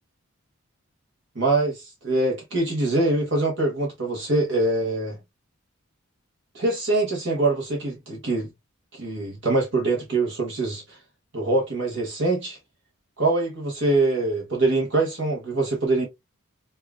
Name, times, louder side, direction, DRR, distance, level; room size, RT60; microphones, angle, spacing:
voice 1, 1.3-5.2 6.5-8.5 8.9-11.0 11.3-12.6 13.2-16.1, right 2 dB, 55° right, 1.1 m, -24 dB
5.4 x 2.5 x 2.3 m
head